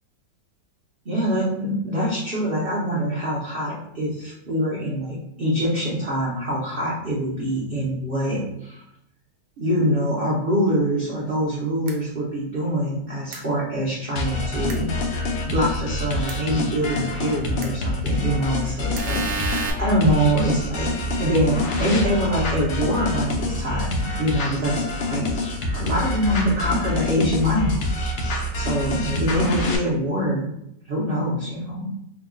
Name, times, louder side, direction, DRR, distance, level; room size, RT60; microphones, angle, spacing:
voice 1, 1.0-8.8 9.6-14.9 15.4-20.9 21.2-25.3 25.7-27.9 28.4-30.5 30.9-31.9, equal, 55° right, -7 dB, 0.6 m, -24 dB
sound 1, 11.9-12.0 13.3-13.4 14.7-14.8 16.3-16.4 17.6-17.7 18.9-19.7, right 4 dB, 75° right, 1.1 m, -29 dB
sound 2, 14.2-29.8, left 2 dB, 85° left, 0.6 m, -26 dB
3.0 x 2.3 x 3.6 m, 0.77 s
omnidirectional pair, 1.9 m